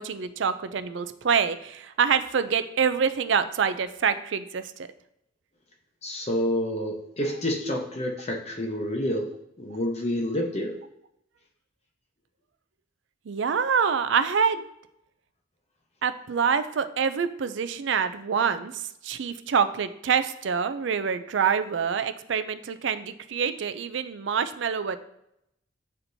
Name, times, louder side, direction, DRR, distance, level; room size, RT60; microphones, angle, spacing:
voice 1, 0.0-4.9 13.3-14.7 16.0-25.0, right 6 dB, 70° right, 11 dB, 0.4 m, -26 dB
voice 2, 6.0-10.8, left 1 dB, 35° left, 1 dB, 0.8 m, -29 dB
9.4 x 4.3 x 2.7 m, 0.80 s
head